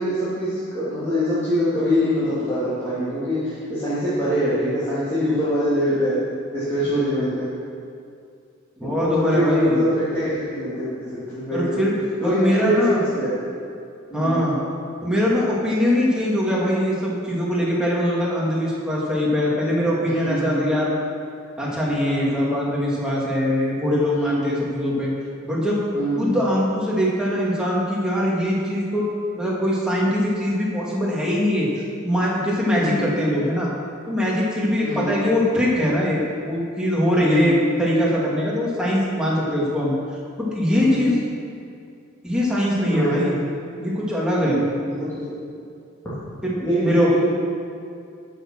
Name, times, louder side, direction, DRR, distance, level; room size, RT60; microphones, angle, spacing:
voice 1, 0.0-6.2 6.5-7.4 8.8-10.9 11.3-11.8 12.2-13.4 14.1-14.4 20.1-20.6 22.0-22.5 24.1-24.5 25.9-26.3 32.8-33.1 34.8-35.1 37.2-37.6 40.7-41.1 42.8-43.3 44.4-45.4 46.6-47.1, equal, 15° left, -13 dB, 3.0 m, -24 dB
voice 2, 8.8-9.8 11.5-11.9 12.2-13.0 14.1-14.6 15.0-20.9 21.6-25.1 25.4-25.8 26.2-29.1 29.3-31.7 32.0-33.7 34.1-37.5 37.8-40.0 40.4-41.1 42.2-43.3 43.8-44.6 46.4-47.1, equal, 5° right, -6 dB, 2.2 m, -22 dB
13.5 x 6.6 x 6.2 m, 2.4 s
head